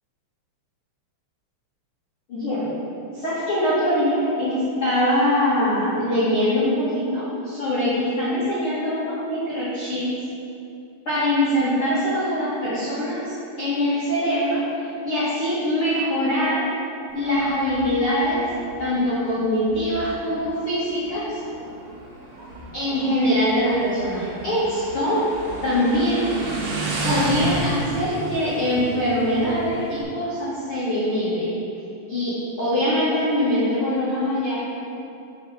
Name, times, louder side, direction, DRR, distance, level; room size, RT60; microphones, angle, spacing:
voice 1, 2.3-2.8 3.1-10.1 11.0-16.6 17.1-18.5 18.8-21.4 22.7-25.3 25.6-26.3 27.0-31.5 32.1-34.7, left 1 dB, 70° left, -13 dB, 1.2 m, -23 dB
Motorcycle, 17.1-30.0, right 2 dB, 70° right, 2.6 m, -33 dB
7.0 x 5.5 x 5.5 m, 2.7 s
omnidirectional pair, 5.8 m